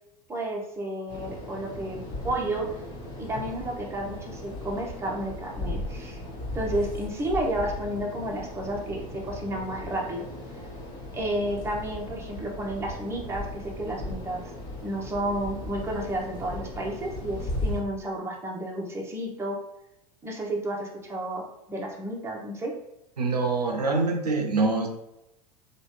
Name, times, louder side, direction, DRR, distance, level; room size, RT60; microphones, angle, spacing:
voice 1, 0.3-2.7 3.2-6.2 6.5-10.2 11.1-14.4 14.8-19.6 20.2-22.7, right 1 dB, 15° right, -1 dB, 0.7 m, -31 dB
sound 1, 1.1-17.8, left 1 dB, 45° left, 1.5 m, -37 dB
voice 2, 23.2-24.9, right 3 dB, 85° right, 2 dB, 0.5 m, -25 dB
3.0 x 2.4 x 3.0 m, 0.85 s
figure-of-eight pair, 85°, 20 cm